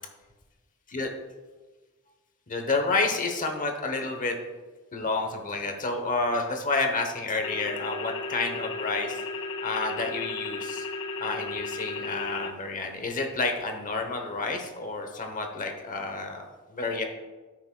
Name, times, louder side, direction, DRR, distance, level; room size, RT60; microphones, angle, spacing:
voice 1, 2.5-4.3 4.9-9.2 9.6-10.9 11.2-16.4 16.7-17.0, left 3 dB, 35° left, 4 dB, 0.9 m, -29 dB
sound 1, 7.4-12.5, left 3 dB, 65° left, 0.7 m, -34 dB
13.5 x 6.0 x 2.2 m, 1.3 s
head